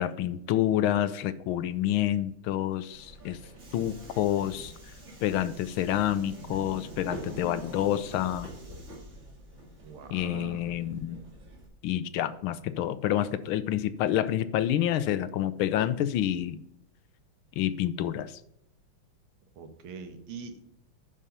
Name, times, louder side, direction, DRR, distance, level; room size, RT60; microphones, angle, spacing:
voice 1, 0.0-3.4 3.7-4.7 5.2-8.5 10.1-11.2 11.8-16.6 17.6-18.4, left 11 dB, 80° left, 14 dB, 1.5 m, -28 dB
Subway metro underground, 2.9-11.7, right 1 dB, 35° right, 2.4 m, -45 dB
voice 2, 9.8-10.7 19.6-20.6, right 5 dB, 80° right, 8 dB, 2.0 m, -43 dB
11.0 x 4.9 x 5.6 m, 0.75 s
omnidirectional pair, 2.3 m